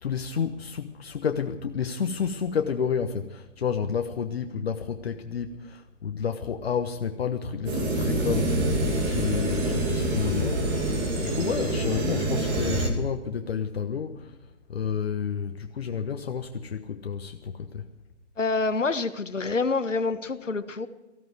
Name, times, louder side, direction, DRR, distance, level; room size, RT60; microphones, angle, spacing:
voice 1, 0.0-8.8 9.1-10.7 11.2-14.3 14.7-17.9, left 7 dB, 55° left, 1.3 m, -30 dB
sound 1, 7.6-12.9, right 1 dB, 20° right, 2.7 m, -26 dB
voice 2, 18.4-20.9, left 3 dB, 85° left, 1.5 m, -27 dB
18.5 x 15.5 x 4.7 m
figure-of-eight pair, 140°, 36 cm